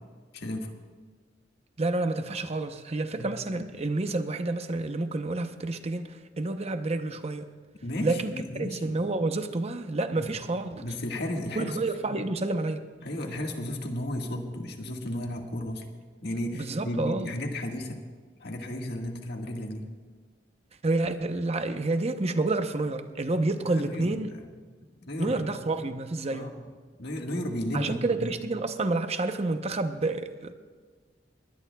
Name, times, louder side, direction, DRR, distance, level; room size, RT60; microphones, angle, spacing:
voice 1, 0.3-0.7 3.2-3.3 7.8-8.9 10.1-10.3 10.8-11.8 12.1-12.2 13.0-15.8 16.2-18.0 18.4-19.9 23.6-24.4 25.1-25.4 26.3-26.6 27.0-28.3, left 1 dB, 60° left, 2 dB, 1.7 m, -34 dB
voice 2, 1.8-7.5 8.0-10.9 11.5-12.8 16.5-17.3 20.8-24.3 25.2-26.5 27.7-30.5, right 2 dB, 35° right, 8 dB, 0.7 m, -29 dB
21.0 x 19.5 x 2.3 m, 1.5 s
head